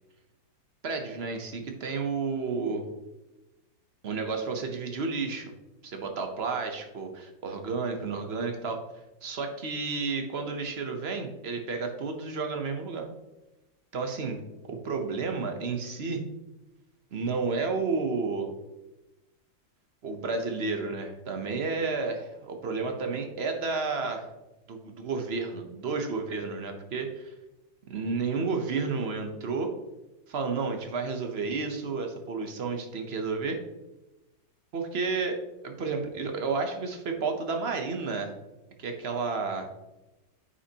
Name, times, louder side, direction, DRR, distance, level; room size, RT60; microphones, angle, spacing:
voice 1, 0.8-2.8 4.0-5.5 5.8-8.8 9.2-13.1 13.9-14.4 14.7-16.2 17.1-18.5 20.0-24.3 24.7-27.3 27.9-29.7 30.3-33.6 34.7-35.4 35.6-38.3 38.8-39.7, right 4 dB, 50° right, 4 dB, 0.8 m, -31 dB
9.6 x 5.7 x 2.8 m, 1.0 s
omnidirectional pair, 2.0 m